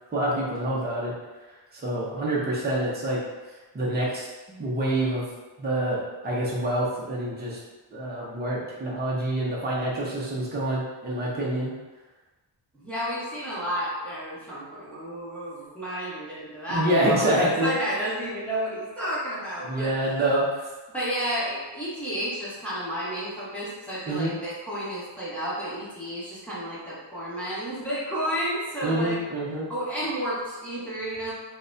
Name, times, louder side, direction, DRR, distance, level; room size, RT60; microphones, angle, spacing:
voice 1, 0.1-1.1 1.7-3.2 3.7-5.2 5.6-7.6 7.9-11.7 16.7-17.7 19.6-20.7 24.1-24.3 28.8-29.7, right 1 dB, 20° right, -5 dB, 0.6 m, -26 dB
voice 2, 12.7-20.0 20.9-29.2 29.7-31.3, equal, 5° left, -10 dB, 1.0 m, -31 dB
3.9 x 2.1 x 2.5 m, 1.2 s
wide cardioid pair, 160°, 46 cm